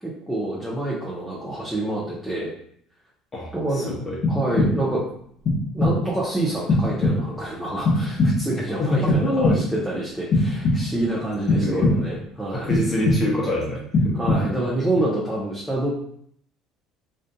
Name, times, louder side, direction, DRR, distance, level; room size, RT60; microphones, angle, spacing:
voice 1, 0.0-2.5 3.5-3.9 4.3-5.1 5.7-12.8 14.1-15.9, right 2 dB, 5° right, -6 dB, 0.7 m, -27 dB
voice 2, 3.9-4.2 8.8-9.6 11.6-11.9 12.5-14.2, left 1 dB, 25° left, -3 dB, 0.8 m, -25 dB
sound 1, 4.2-5.0 5.4-6.2 6.7-7.5 7.8-8.6 9.1-9.9 10.3-11.1 11.5-12.3 12.7-13.5 13.9-14.7, left 2 dB, 55° left, 0.8 m, -22 dB
2.5 x 2.5 x 2.2 m, 0.66 s
supercardioid pair, 85°, 0 cm